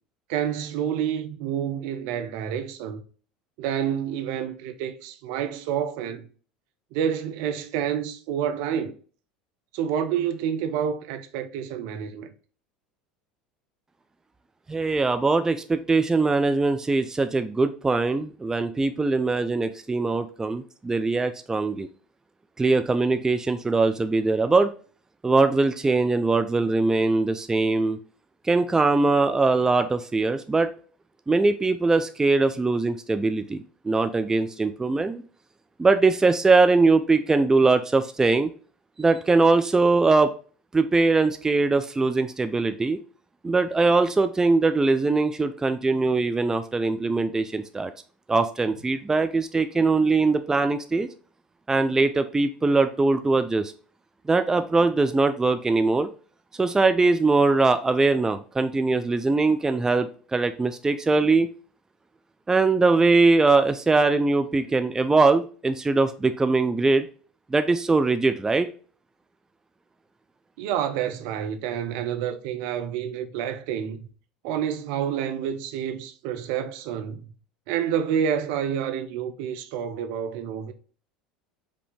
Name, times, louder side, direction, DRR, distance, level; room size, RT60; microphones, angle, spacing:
voice 1, 0.3-3.0 3.6-6.2 6.9-8.9 9.7-12.3 70.6-74.1 74.4-77.2 77.7-80.7, right 9 dB, 65° right, 0.6 m, -28 dB
voice 2, 14.7-21.9 22.6-24.7 25.2-28.0 28.4-30.7 31.3-35.2 35.8-38.5 39.0-40.3 40.7-43.0 43.4-47.9 48.3-51.1 51.7-53.7 54.3-56.1 56.6-61.5 62.5-67.1 67.5-68.7, right 3 dB, 15° right, 0.4 m, -21 dB
5.1 x 2.8 x 3.4 m
hypercardioid pair, 75°, 4 cm